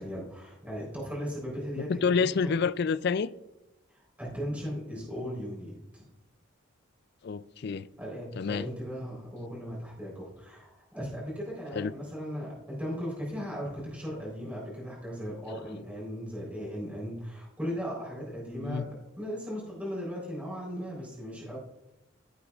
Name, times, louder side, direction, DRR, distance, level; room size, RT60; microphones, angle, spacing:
voice 1, 0.0-2.1 2.4-2.5 3.9-6.0 8.0-21.6, equal, 5° right, 3.8 m, -37 dB
voice 2, 1.8-3.3 7.2-7.9 8.4-8.7 11.7-11.9 18.6-18.9, left 5 dB, 55° left, 0.4 m, -28 dB
16.0 x 8.2 x 2.4 m
head